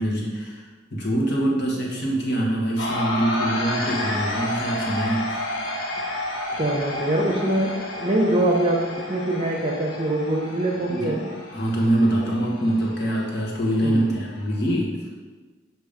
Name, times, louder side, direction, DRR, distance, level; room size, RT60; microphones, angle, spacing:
voice 1, 0.0-5.4 10.9-11.2 11.5-15.0, right 1 dB, 60° left, -3 dB, 1.3 m, -24 dB
sound 1, 2.8-14.7, left 1 dB, 75° left, 0.9 m, -31 dB
voice 2, 6.5-11.3 13.8-14.1, right 1 dB, 30° right, 0 dB, 0.9 m, -23 dB
7.1 x 3.0 x 5.0 m, 1.3 s
head